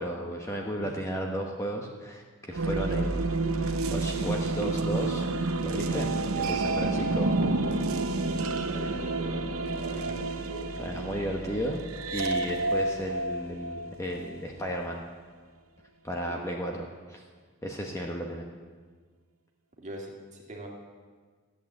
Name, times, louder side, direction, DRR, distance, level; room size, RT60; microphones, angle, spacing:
voice 1, 0.0-5.2 5.6-6.1 6.4-7.3 10.8-11.8 12.1-15.0 16.0-17.2 17.6-18.5, equal, 15° left, 0 dB, 1.0 m, -34 dB
sound 1, 2.5-14.3, right 2 dB, 75° right, 0.9 m, -29 dB
voice 2, 8.3-10.7 16.2-16.6 19.8-20.7, right 1 dB, 35° right, -1 dB, 2.0 m, -42 dB
14.0 x 8.7 x 7.3 m, 1.5 s
head